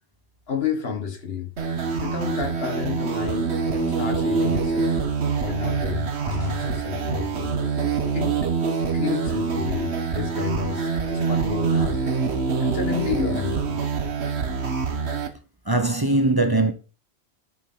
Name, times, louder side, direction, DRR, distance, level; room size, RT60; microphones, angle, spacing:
voice 1, 0.5-1.5 2.0-4.9 5.4-7.5 8.1-8.5 8.9-12.0 12.6-13.8, left 6 dB, 65° left, 1.6 m, -30 dB
sound 1, 1.6-15.3, right 5 dB, 80° right, 1.6 m, -25 dB
sound 2, 6.3-7.6, left 2 dB, 45° left, 4.9 m, -44 dB
voice 2, 15.7-16.7, right 2 dB, 20° right, 0.9 m, -20 dB
8.5 x 7.5 x 3.9 m
omnidirectional pair, 1.1 m